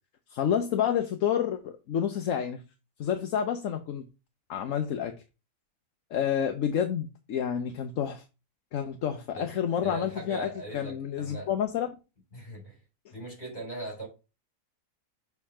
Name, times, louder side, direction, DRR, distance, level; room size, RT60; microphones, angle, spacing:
voice 1, 0.3-2.6 3.0-4.0 4.5-5.1 6.1-8.2 8.7-11.9, left 9 dB, 70° left, 1.1 m, -29 dB
voice 2, 9.8-11.5 12.3-12.8 13.1-14.1, right 2 dB, 35° left, 4.2 m, -39 dB
6.8 x 3.6 x 5.6 m
omnidirectional pair, 1.5 m